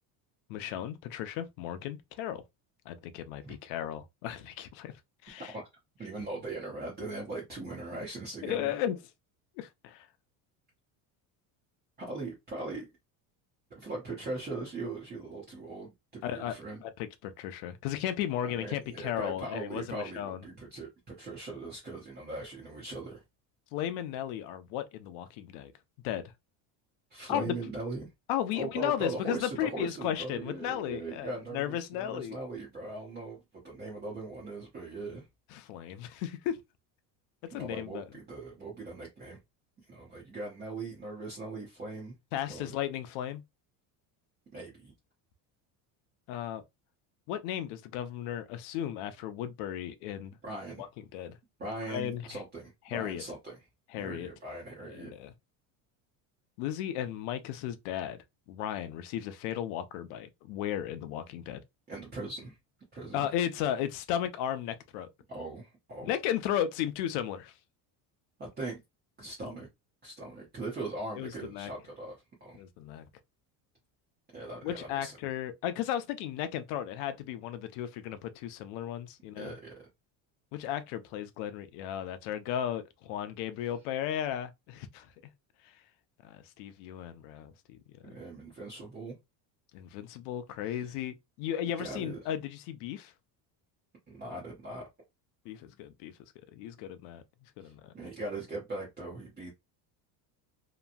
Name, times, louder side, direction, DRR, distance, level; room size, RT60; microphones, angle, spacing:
voice 1, 0.5-2.4 2.9-4.9 5.2-5.5 8.4-9.0 9.6-10.1 16.2-16.6 16.8-20.4 23.7-25.7 26.0-26.3 27.3-27.5 28.3-32.4 35.5-36.6 37.5-38.0 42.3-43.4 46.3-46.6 47.3-50.4 50.8-50.9 51.1-51.4 51.9-52.4 52.9-53.2 53.9-54.3 54.9-55.3 56.6-58.2 58.5-61.6 63.1-65.1 66.0-67.5 71.2-71.7 72.6-73.1 74.6-79.5 80.5-85.1 86.2-87.8 88.0-88.1 89.7-93.1 95.5-96.1 96.5-97.2 97.6-97.9, left 11 dB, 75° left, 0.6 m, -35 dB
voice 2, 5.4-5.7 6.0-8.8 12.0-12.8 13.7-16.8 18.4-23.2 27.1-28.1 28.5-35.3 37.5-39.4 39.9-42.1 42.5-42.8 44.5-44.9 50.4-50.9 51.6-53.7 54.0-55.1 61.9-62.6 62.9-63.3 65.3-66.1 68.4-68.8 69.2-69.7 70.0-72.6 74.3-75.2 79.4-79.7 88.0-89.2 90.7-90.9 91.8-92.2 94.1-94.8 97.6-99.5, right 2 dB, 20° right, 0.8 m, -40 dB
3.0 x 2.2 x 2.5 m
cardioid pair, 145°, 43 cm